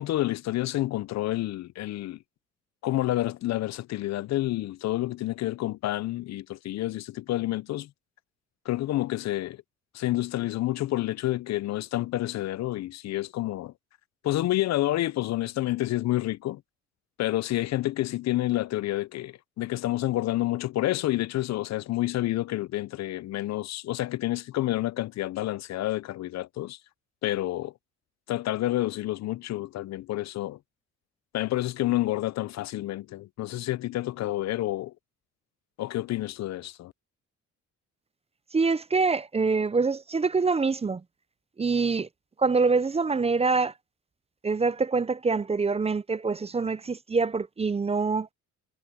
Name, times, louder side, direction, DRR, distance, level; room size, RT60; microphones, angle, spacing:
voice 1, 0.0-2.2 2.8-7.9 8.7-9.6 9.9-13.7 14.2-16.6 17.2-26.8 27.2-27.7 28.3-30.6 31.3-34.9 35.8-36.9, left 15 dB, 60° left, 0.5 m, -29 dB
voice 2, 38.5-41.0 41.6-42.1 42.4-43.7 44.4-48.3, right 4 dB, 20° right, 0.5 m, -25 dB
cardioid pair, 90°, 30 cm